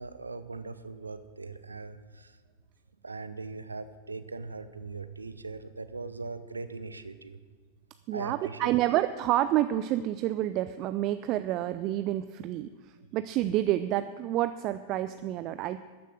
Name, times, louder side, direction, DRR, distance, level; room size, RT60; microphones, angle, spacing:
voice 1, 0.0-2.4 3.0-7.4 8.1-8.7, right 3 dB, 80° right, 13 dB, 0.8 m, -40 dB
voice 2, 8.1-12.7 13.1-15.8, right 13 dB, 40° right, 12 dB, 0.4 m, -28 dB
13.0 x 10.0 x 6.4 m, 1.5 s
figure-of-eight pair, 90°, 0 cm